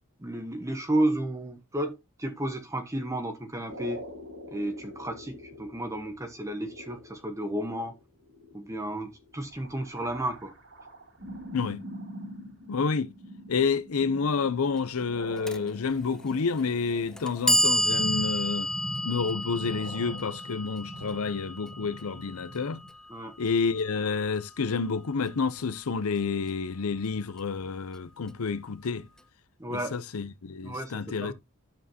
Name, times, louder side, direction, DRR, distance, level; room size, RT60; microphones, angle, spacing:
voice 1, 0.2-4.0 4.5-8.0 8.5-10.5 23.1-23.3 29.6-30.0 30.6-31.3, right 1 dB, 15° right, 1.1 m, -32 dB
sound 1, 3.7-22.9, equal, 60° right, 3.2 m, -44 dB
voice 2, 11.5-11.8 12.7-13.1 13.5-18.7 19.0-22.8 23.4-29.1 29.7-31.3, left 5 dB, 75° left, 0.6 m, -29 dB
Clock, 15.5-15.6 16.5-16.6 17.2-23.2, equal, 5° left, 0.4 m, -30 dB
10.5 x 7.3 x 2.8 m
head